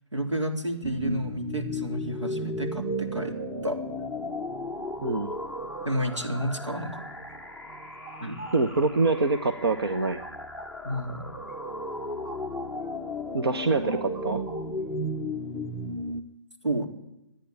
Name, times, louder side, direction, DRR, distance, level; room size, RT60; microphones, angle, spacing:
voice 1, 0.1-3.4 3.6-3.8 5.8-7.0 8.2-8.4 10.8-11.3 16.6-16.9, right 1 dB, 80° right, 3 dB, 4.0 m, -30 dB
sound 1, 0.8-16.2, left 1 dB, ahead, 0.7 m, -35 dB
voice 2, 5.0-5.3 8.5-10.2 13.3-14.4, right 3 dB, 55° right, 6 dB, 1.2 m, -25 dB
sound 2, 5.1-7.4 7.7-12.9 13.2-14.9, right 2 dB, 25° right, 2.3 m, -48 dB
25.5 x 10.0 x 10.0 m, 0.89 s
figure-of-eight pair, 140°, 15 cm